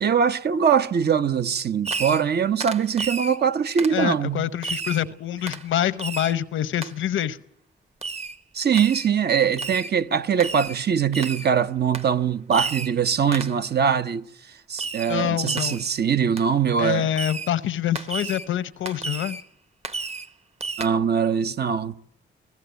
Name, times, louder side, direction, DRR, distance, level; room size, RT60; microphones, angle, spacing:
voice 1, 0.0-4.5 8.5-14.2 14.7-17.1 20.8-22.0, right 7 dB, 55° right, 0.9 m, -22 dB
Fireworks, 1.8-2.3 2.6-3.4 3.8-4.0 4.6-5.1 5.5-5.7 6.0-6.4 6.8-6.9 8.0-8.4 8.7-9.1 9.6-9.9 10.4-10.8 11.1-11.5 11.9-12.1 12.5-13.0 13.3-13.6 14.8-15.2 15.5-15.9 16.4-16.5 17.2-17.5 18.0-18.5 18.9-19.4 19.8-20.3 20.6-20.9, right 4 dB, 30° right, 1.1 m, -32 dB
voice 2, 3.9-7.4 15.1-15.8 16.8-19.4, left 11 dB, 90° left, 0.9 m, -26 dB
24.5 x 15.5 x 8.2 m
cardioid pair, 85°, 20 cm